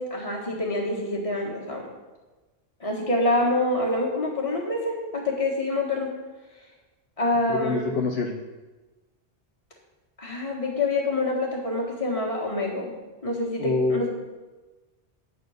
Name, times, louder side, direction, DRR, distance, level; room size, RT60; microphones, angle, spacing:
voice 1, 0.0-1.9 2.8-6.1 7.2-7.9 10.2-12.9 13.2-14.1, left 2 dB, 30° left, -2 dB, 1.7 m, -26 dB
voice 2, 7.5-8.4 13.6-14.1, left 3 dB, 70° left, 2 dB, 0.9 m, -26 dB
9.0 x 4.2 x 6.4 m, 1.2 s
omnidirectional pair, 1.1 m